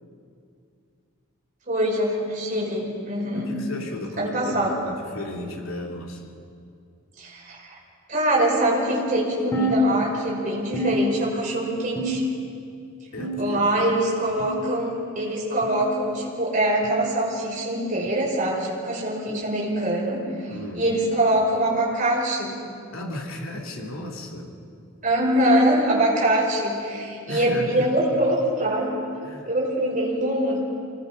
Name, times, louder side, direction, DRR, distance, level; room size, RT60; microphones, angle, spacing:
voice 1, 1.7-3.6 4.2-4.8 7.2-7.8 8.1-12.2 13.4-14.9 15.2-22.6 25.0-29.0 29.5-30.6, right 1 dB, 40° right, -4 dB, 5.4 m, -23 dB
voice 2, 3.3-6.3 13.1-13.7 20.5-20.9 22.9-24.5 27.3-27.9 29.2-29.5, left 1 dB, 75° left, -1 dB, 3.1 m, -34 dB
sound 1, 9.5-10.4 10.7-11.5 12.0-12.6 13.2-13.8 14.4-14.8 15.6-15.9 16.8-17.1 18.1-18.3 19.3-19.5 20.5-20.7 21.7-21.9 22.9-23.0 24.2-24.3, left 1 dB, 15° left, 2.6 m, -28 dB
25.5 x 19.0 x 5.3 m, 2.4 s
head